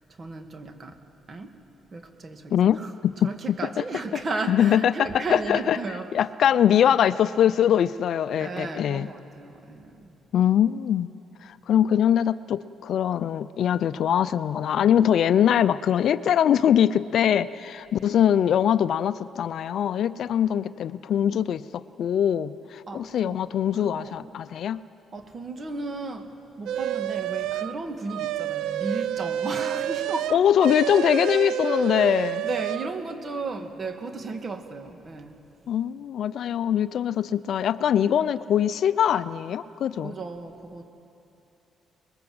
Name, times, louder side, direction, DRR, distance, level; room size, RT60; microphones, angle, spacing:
voice 1, 0.2-1.0 1.3-1.5 1.9-2.9 3.2-6.1 8.4-10.2 22.9-23.4 23.8-24.2 25.1-30.4 31.6-32.1 32.4-35.4 40.0-40.8, right 3 dB, 40° right, 6 dB, 2.1 m, -35 dB
voice 2, 2.5-3.3 3.8-3.9 4.5-5.8 6.1-9.1 10.3-11.1 11.4-24.8 30.3-32.4 35.7-40.1, left 9 dB, 65° left, 15 dB, 0.5 m, -22 dB
sound 1, 26.7-27.7 28.1-32.9, right 11 dB, 85° right, 0.6 m, -29 dB
25.5 x 21.0 x 7.9 m, 2.9 s
cardioid pair, 90°, 0 cm